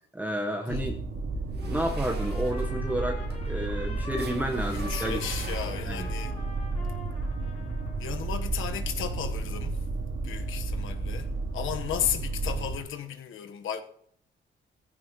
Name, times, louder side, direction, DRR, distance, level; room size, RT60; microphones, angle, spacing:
voice 1, 0.1-0.9 1.6-5.2 5.9-6.1, right 1 dB, 10° right, 1.2 m, -31 dB
sound 1, 0.7-12.8, right 3 dB, 80° right, 3.2 m, -32 dB
sound 2, 1.5-6.1, right 5 dB, 55° right, 1.9 m, -45 dB
Trumpet, 1.6-8.4, left 3 dB, 35° left, 3.9 m, -45 dB
voice 2, 4.7-6.4 8.0-9.8 10.2-13.8, left 9 dB, 85° left, 1.3 m, -34 dB
18.0 x 15.5 x 3.1 m
cardioid pair, 115°, 20 cm